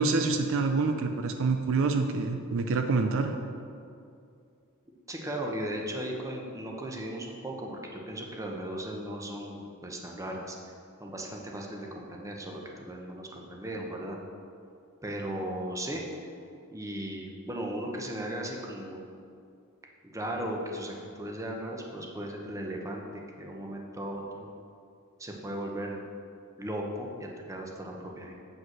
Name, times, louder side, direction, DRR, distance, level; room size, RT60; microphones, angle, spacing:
voice 1, 0.0-3.3, right 4 dB, 65° right, 6 dB, 0.5 m, -26 dB
voice 2, 5.1-10.7 11.0-14.2 15.0-16.0 16.7-19.0 20.0-24.5 25.2-26.0 26.6-28.3, right 1 dB, 15° right, 0 dB, 0.9 m, -37 dB
8.0 x 5.3 x 6.0 m, 2.5 s
head